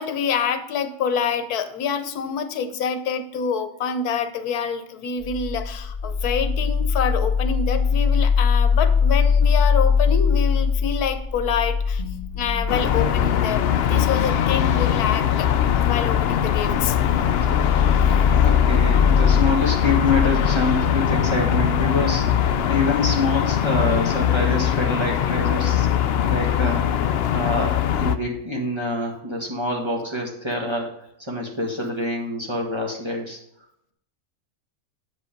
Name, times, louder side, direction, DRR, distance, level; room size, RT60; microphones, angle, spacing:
voice 1, 0.0-12.0 12.3-15.5 15.7-17.0, left 6 dB, 90° left, 10 dB, 1.3 m, -26 dB
sound 1, 5.2-22.6, left 5 dB, 30° left, 1.1 m, -23 dB
sound 2, 12.7-28.2, left 10 dB, 70° left, 0.5 m, -21 dB
voice 2, 18.3-22.3 22.7-25.9 26.2-30.9 31.2-33.4, left 2 dB, 20° right, -1 dB, 1.5 m, -26 dB
8.1 x 5.2 x 5.1 m, 0.77 s
omnidirectional pair, 1.6 m